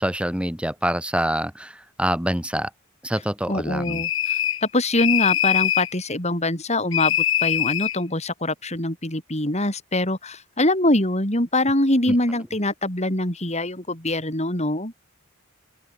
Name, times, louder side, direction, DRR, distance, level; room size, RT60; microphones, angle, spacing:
voice 1, 0.0-2.7 3.0-4.0 12.1-12.2, right 1 dB, 5° right, 2.9 m, -26 dB
voice 2, 3.5-4.3 4.7-7.2 7.4-14.9, left 1 dB, 30° left, 5.9 m, -23 dB
sound 1, 3.8-4.7 5.0-5.9 6.9-8.0, left 11 dB, 65° left, 3.0 m, -23 dB
open air
head